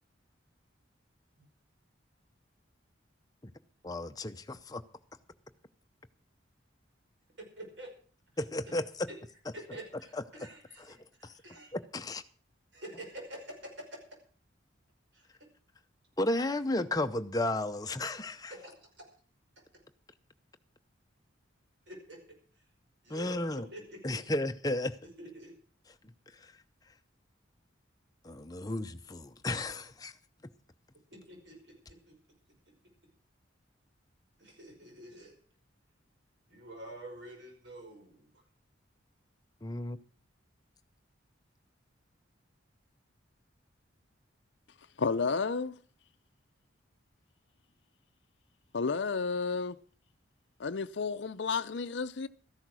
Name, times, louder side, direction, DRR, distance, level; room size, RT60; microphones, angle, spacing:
voice 1, 3.8-4.8 8.4-9.1 10.1-10.2 10.8-11.0 11.2-11.3 11.7-12.2 16.2-18.5 23.1-23.7 24.0-25.0 26.3-26.5 28.2-30.1 39.6-40.0, left 1 dB, 20° left, 0.7 m, -33 dB
voice 2, 7.6-7.9 9.1-9.2 9.5-11.7 12.7-14.0 15.1-15.4 18.5-18.9 21.9-22.2 23.0-24.2 25.2-25.6 31.1-32.0 34.4-35.4 36.5-38.3, right 1 dB, 65° right, 5.5 m, -47 dB
voice 3, 45.0-45.8 48.7-49.8 50.6-52.3, left 4 dB, 65° left, 0.6 m, -31 dB
13.5 x 11.0 x 6.2 m
head